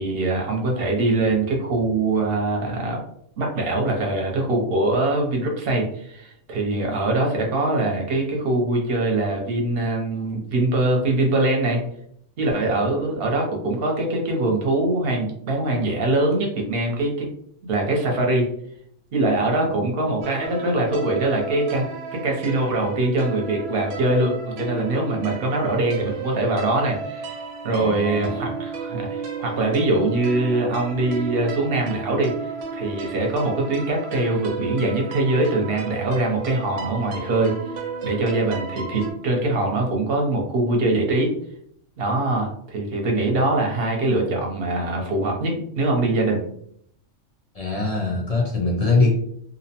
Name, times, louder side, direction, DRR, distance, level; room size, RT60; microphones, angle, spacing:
voice 1, 0.0-3.0 3.4-11.8 12.4-17.3 17.7-18.5 19.1-27.4 27.6-37.5 38.0-41.3 42.0-46.4, right 2 dB, 55° right, 0 dB, 0.8 m, -23 dB
sound 1, 20.2-39.1, right 5 dB, 85° right, 0.9 m, -33 dB
voice 2, 27.7-28.5 43.2-43.3 47.5-49.1, left 3 dB, 70° left, -3 dB, 0.3 m, -23 dB
2.6 x 2.0 x 2.7 m, 0.68 s
omnidirectional pair, 1.3 m